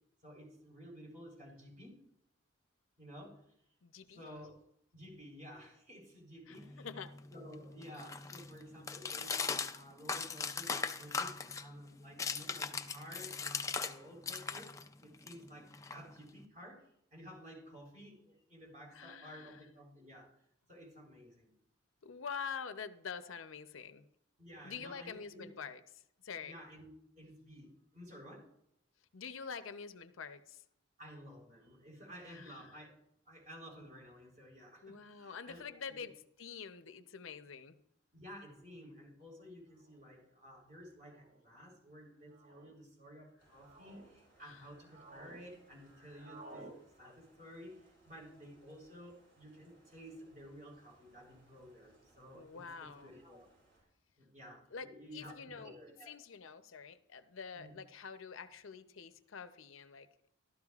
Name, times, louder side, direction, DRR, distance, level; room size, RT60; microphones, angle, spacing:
voice 1, 0.2-2.0 3.0-3.4 4.1-4.6 4.9-6.9 7.3-14.7 15.0-20.3 20.7-21.5 24.4-25.5 26.4-26.9 27.2-28.5 31.0-36.1 38.1-46.7 47.0-53.5 54.2-56.1 57.5-57.8, equal, 40° right, -2 dB, 3.8 m, -53 dB
voice 2, 3.8-4.2 6.5-7.1 18.9-19.6 22.0-24.1 24.6-25.8 26.2-26.5 29.1-30.6 32.3-32.6 34.8-37.8 44.4-44.6 52.3-53.1 54.7-55.8 56.1-60.1, left 6 dB, 80° left, 10 dB, 0.7 m, -46 dB
sound 1, 6.6-14.0 14.2-16.4, left 5 dB, 15° left, 0.4 m, -40 dB
sound 2, 38.7-38.8 39.8-40.1 41.0-41.4 42.3-42.7 43.3-44.1 44.5-45.4 45.7-46.7, right 2 dB, 90° right, 5.3 m, -55 dB
sound 3, 43.4-53.8, right 2 dB, 55° right, 5.4 m, -69 dB
14.5 x 12.5 x 2.4 m, 0.75 s
head